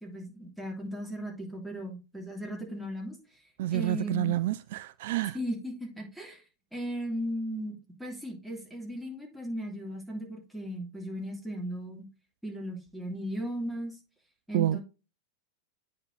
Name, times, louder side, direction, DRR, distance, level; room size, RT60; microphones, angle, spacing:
voice 1, 0.0-3.2 3.7-4.3 5.3-6.4 6.7-12.1 12.4-14.0 14.5-14.8, equal, ahead, 2.9 m, -36 dB
voice 2, 3.6-5.4 14.5-14.8, right 14 dB, 55° right, 0.3 m, -28 dB
8.7 x 5.0 x 3.9 m
figure-of-eight pair, 90°, 0 cm